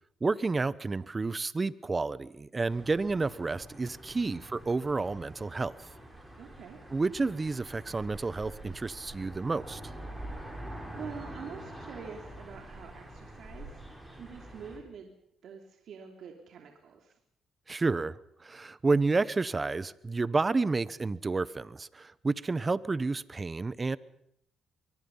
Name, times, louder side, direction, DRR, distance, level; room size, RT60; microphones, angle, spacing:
voice 1, 0.2-5.8 6.9-9.8 17.7-24.0, right 3 dB, 25° right, 0.9 m, -30 dB
sound 1, 2.7-14.8, right 1 dB, 5° right, 7.8 m, -45 dB
voice 2, 6.4-6.8 10.9-13.9 14.1-15.1 15.4-17.2, right 6 dB, 65° right, 3.1 m, -46 dB
23.0 x 23.0 x 5.6 m
cardioid pair, 90°, 0 cm